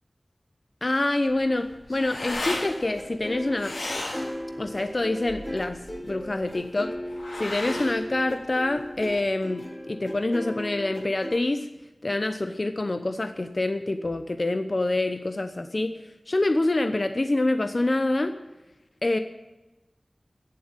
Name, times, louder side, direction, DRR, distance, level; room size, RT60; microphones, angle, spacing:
voice 1, 0.8-3.7 4.6-6.9 7.4-11.7 12.0-15.9 16.3-18.3 19.0-19.2, left 2 dB, 50° left, 8 dB, 0.9 m, -26 dB
sound 1, 1.3-9.2, left 1 dB, 90° left, 3.0 m, -36 dB
sound 2, 2.5-11.3, equal, 20° left, 3.3 m, -36 dB
16.5 x 7.5 x 8.9 m, 1.1 s
wide cardioid pair, 65°, 0 cm